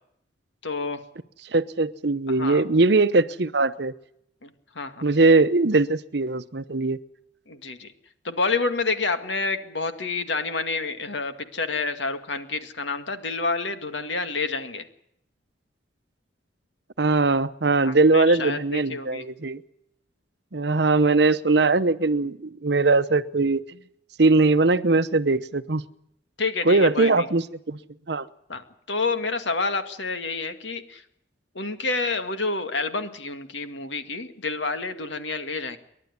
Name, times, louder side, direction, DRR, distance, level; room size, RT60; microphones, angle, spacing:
voice 1, 0.6-1.0 2.3-2.6 4.4-5.0 7.5-7.9 8.2-14.9 17.8-19.3 26.4-27.3 28.5-31.0 31.5-35.8, left 3 dB, 75° left, 8 dB, 2.1 m, -29 dB
voice 2, 1.5-3.9 5.0-7.0 17.0-19.6 20.5-23.6 24.2-25.8 26.7-27.8 28.1-28.3, right 3 dB, 60° right, 13 dB, 0.9 m, -20 dB
29.5 x 12.0 x 9.8 m, 0.75 s
head